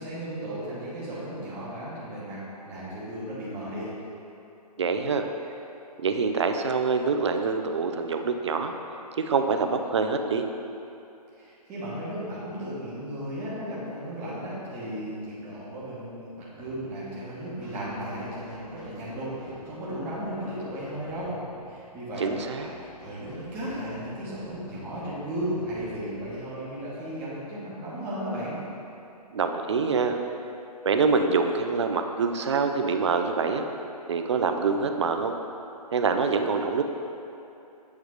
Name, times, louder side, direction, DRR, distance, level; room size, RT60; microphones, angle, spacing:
voice 1, 0.0-2.4 2.6-3.9 11.3-21.3 21.7-22.2 22.5-28.6, right 1 dB, 10° right, -9 dB, 1.0 m, -35 dB
voice 2, 4.8-5.3 6.0-8.7 9.2-10.4 22.2-22.7 29.3-30.2 30.9-33.7 34.1-35.3 35.9-36.8, right 5 dB, 45° right, 6 dB, 0.4 m, -25 dB
sound 1, 16.5-27.9, left 2 dB, 20° left, 1.3 m, -48 dB
8.4 x 3.2 x 4.7 m, 2.8 s
hypercardioid pair, 165°, 21 cm